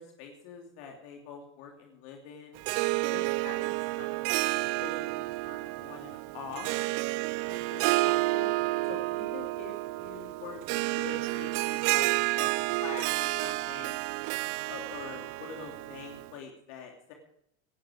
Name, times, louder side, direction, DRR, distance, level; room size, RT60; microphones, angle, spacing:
voice 1, 0.0-2.6 3.1-6.7 7.4-8.6 8.9-12.1 12.3-12.5 12.8-14.0 14.7-17.1, left 5 dB, 75° left, 2 dB, 2.8 m, -45 dB
Harp, 2.6-16.3, right 21 dB, 65° right, 0.5 m, -30 dB
18.5 x 11.5 x 4.9 m, 0.75 s
supercardioid pair, 110°, 33 cm